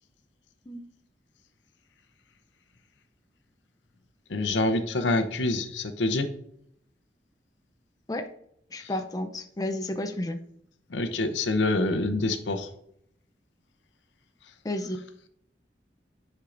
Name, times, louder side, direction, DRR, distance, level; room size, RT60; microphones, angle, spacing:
voice 1, 4.3-6.3 8.8-8.9 10.9-12.7 14.4-14.5, left 2 dB, 85° left, 9 dB, 0.7 m, -26 dB
voice 2, 8.7-10.4 14.6-15.0, left 1 dB, 20° left, 6 dB, 0.4 m, -31 dB
9.8 x 4.6 x 2.5 m, 0.71 s
head